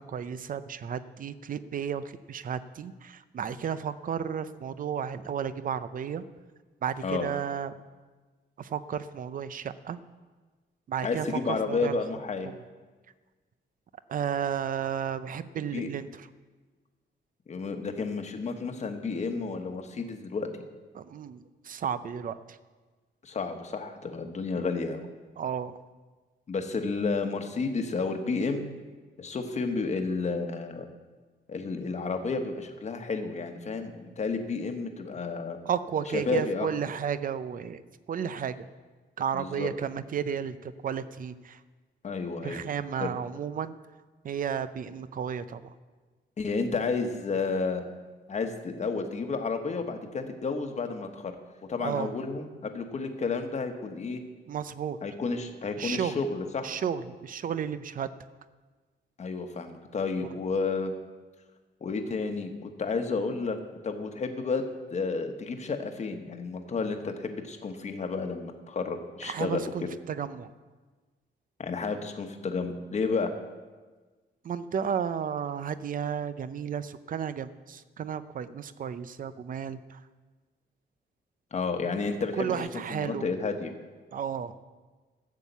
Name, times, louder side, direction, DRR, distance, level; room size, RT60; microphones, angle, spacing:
voice 1, 0.0-6.2 6.8-7.7 8.6-10.0 10.9-12.0 14.1-16.3 20.9-22.6 24.5-24.6 25.4-25.8 35.7-37.8 38.1-38.7 39.2-41.6 42.4-43.7 44.2-45.6 51.8-52.1 54.5-55.0 55.8-56.2 56.6-58.1 60.2-60.3 69.2-70.5 74.4-80.0 82.4-83.3 84.1-84.5, right 8 dB, 45° right, 14 dB, 0.5 m, -33 dB
voice 2, 11.0-12.5 15.7-15.9 17.5-20.5 23.2-25.1 26.5-28.7 29.2-30.9 31.5-35.6 36.1-36.7 39.3-39.7 42.0-42.6 43.0-43.1 46.4-48.0 48.3-51.3 51.6-54.2 55.0-56.7 59.2-60.9 61.8-63.6 63.8-64.6 64.9-69.7 71.6-73.3 81.5-83.7, left 4 dB, 40° left, 6 dB, 1.2 m, -31 dB
14.0 x 7.4 x 8.1 m, 1.3 s
wide cardioid pair, 175°, 19 cm